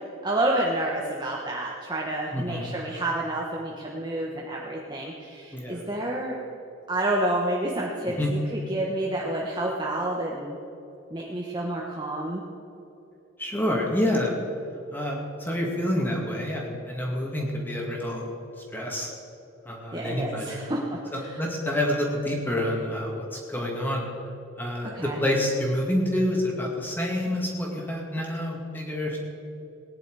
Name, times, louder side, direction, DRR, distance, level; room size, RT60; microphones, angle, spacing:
voice 1, 0.2-6.4 6.9-10.6 11.1-12.4 19.9-21.4 24.9-25.2, right 1 dB, 20° right, -3 dB, 1.1 m, -29 dB
voice 2, 2.3-2.7 5.5-5.8 8.2-8.3 13.4-14.3 14.9-18.2 18.7-19.1 19.7-20.6 21.1-24.1 24.6-29.2, left 1 dB, 10° left, -1 dB, 2.1 m, -28 dB
19.0 x 10.5 x 4.8 m, 3.0 s
head